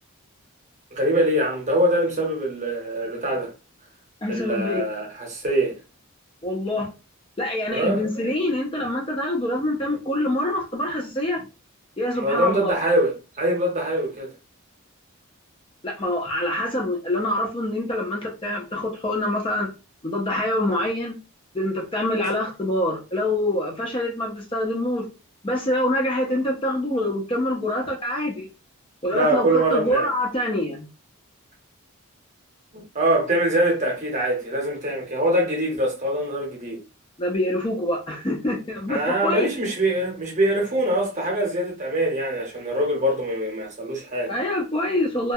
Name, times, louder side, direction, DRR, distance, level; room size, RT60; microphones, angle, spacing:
voice 1, 0.9-3.5 4.3-5.8 7.7-8.0 12.1-14.3 29.1-30.1 32.7-36.8 38.9-44.4, right 1 dB, 35° right, 0.8 m, -23 dB
voice 2, 4.2-4.9 6.4-6.9 7.4-11.4 12.0-12.7 15.8-19.7 20.0-21.2 21.5-25.1 25.4-28.5 29.0-30.9 37.2-39.5 44.3-45.3, left 1 dB, 25° left, 0.4 m, -25 dB
2.3 x 2.1 x 2.6 m
head